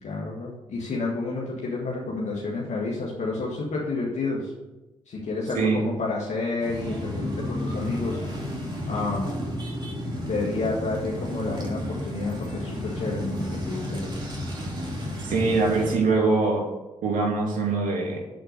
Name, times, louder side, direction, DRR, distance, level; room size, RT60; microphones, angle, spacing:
voice 1, 0.0-4.5 5.1-8.2 8.9-9.3 10.2-14.1, left 3 dB, 60° left, -3 dB, 1.7 m, -30 dB
sound 1, 6.6-15.9, left 1 dB, 35° right, 2.8 m, -32 dB
voice 2, 15.2-16.6 17.0-18.2, right 3 dB, 75° right, -1 dB, 2.6 m, -23 dB
7.7 x 4.4 x 6.5 m, 1.1 s
supercardioid pair, 50°, 13 cm